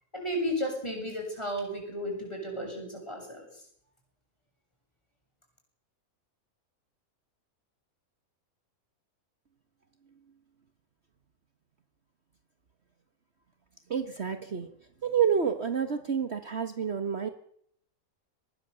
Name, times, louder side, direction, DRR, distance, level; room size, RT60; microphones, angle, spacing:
voice 1, 0.1-3.4, equal, 20° left, 2 dB, 7.5 m, -33 dB
voice 2, 13.9-14.7 15.0-17.3, right 7 dB, 45° right, 8 dB, 1.6 m, -28 dB
24.5 x 20.5 x 7.0 m, 0.69 s
omnidirectional pair, 1.6 m